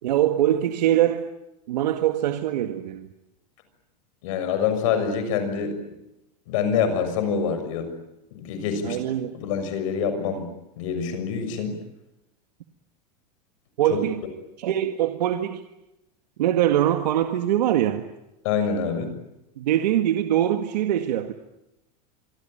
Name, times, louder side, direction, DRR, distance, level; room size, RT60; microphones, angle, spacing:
voice 1, 0.0-1.3 1.7-3.1 8.8-9.4 13.8-14.2 14.6-15.6 16.4-18.0 19.6-21.3, right 12 dB, 75° right, 1.9 m, -23 dB
voice 2, 4.2-5.8 6.5-7.9 8.3-9.0 9.3-10.5 10.8-11.8 13.9-14.0 18.4-19.1, left 6 dB, 50° left, 6.6 m, -26 dB
27.0 x 24.0 x 9.1 m
supercardioid pair, 180°, 21 cm